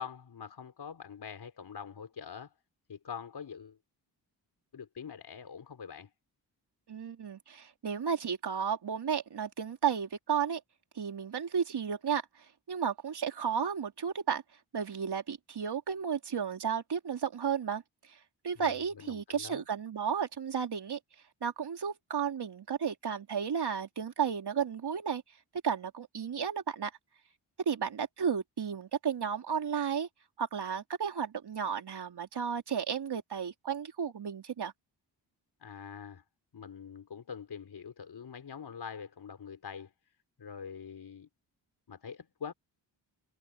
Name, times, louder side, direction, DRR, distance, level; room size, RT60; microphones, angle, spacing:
voice 1, 0.0-2.5 2.9-3.8 4.7-6.1 18.6-19.7 35.6-36.2 36.5-39.9 40.4-41.3 41.9-42.5, left 7 dB, 55° left, 4.1 m, -44 dB
voice 2, 6.9-10.6 10.9-12.2 12.7-14.4 14.7-17.8 18.4-21.0 21.4-25.2 25.6-26.9 27.6-30.1 30.4-34.7, right 7 dB, 60° right, 3.4 m, -33 dB
cardioid pair, 70°, 45 cm